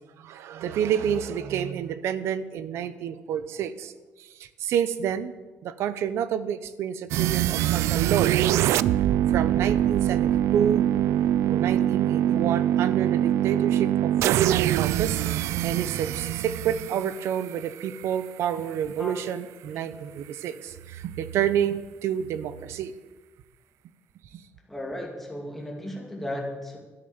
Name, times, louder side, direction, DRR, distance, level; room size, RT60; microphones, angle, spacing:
voice 1, 0.2-3.9 4.2-5.3 5.6-8.4 9.3-10.9 11.5-22.9 24.3-24.4, right 9 dB, 70° right, 14 dB, 0.9 m, -29 dB
sound 1, 7.1-18.1, right 12 dB, 90° right, 0.4 m, -24 dB
voice 2, 24.7-26.8, left 1 dB, 5° left, 0 dB, 2.6 m, -35 dB
13.0 x 10.0 x 7.2 m, 1.2 s
cardioid pair, 170°, 5 cm